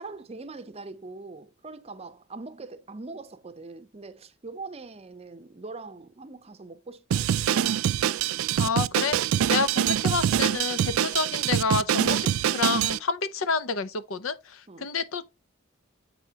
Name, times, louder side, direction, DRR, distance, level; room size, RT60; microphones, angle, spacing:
voice 1, 0.0-7.3 14.7-14.9, right 3 dB, 30° right, 0.6 m, -42 dB
Drum kit, 7.1-13.0, right 9 dB, 80° right, 0.3 m, -24 dB
voice 2, 8.6-9.2 9.5-12.3 12.5-15.2, left 5 dB, 80° left, 0.6 m, -29 dB
7.6 x 4.7 x 2.8 m
head